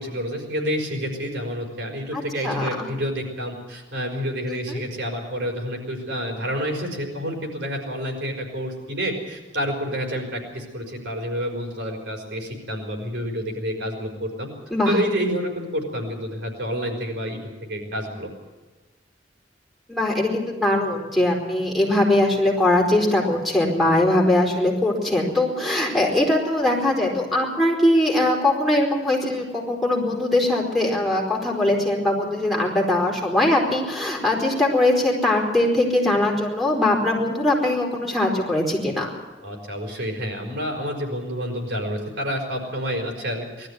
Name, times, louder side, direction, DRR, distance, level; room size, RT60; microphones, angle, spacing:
voice 1, 0.0-14.5 14.9-18.3 39.4-43.7, equal, 80° right, 2 dB, 5.2 m, -29 dB
voice 2, 2.1-2.9 4.5-4.8 14.7-14.9 19.9-39.1, left 1 dB, ahead, -2 dB, 4.6 m, -21 dB
20.5 x 13.5 x 9.6 m, 1.2 s
head